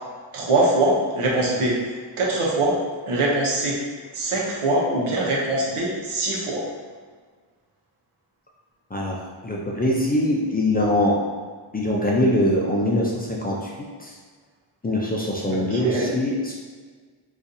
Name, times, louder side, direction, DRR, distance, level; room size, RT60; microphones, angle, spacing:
voice 1, 0.3-1.8 2.2-2.8 3.1-3.8 4.1-6.7 15.5-16.1, right 2 dB, 85° right, -3 dB, 0.9 m, -22 dB
voice 2, 9.4-11.2 11.7-13.7 14.0-14.1 14.8-16.5, left 1 dB, 20° left, -3 dB, 0.4 m, -22 dB
4.0 x 2.4 x 2.6 m, 1.5 s
wide cardioid pair, 110°, 49 cm